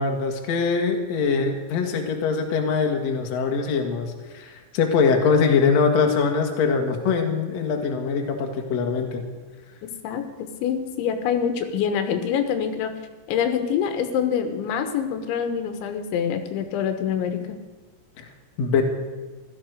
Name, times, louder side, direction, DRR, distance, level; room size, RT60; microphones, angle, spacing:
voice 1, 0.0-9.2 18.2-18.3 18.6-18.8, left 5 dB, 55° left, 3 dB, 2.1 m, -23 dB
voice 2, 10.0-12.9 13.3-17.6, left 8 dB, 80° left, 8 dB, 3.6 m, -25 dB
16.0 x 12.5 x 6.6 m, 1.3 s
omnidirectional pair, 5.3 m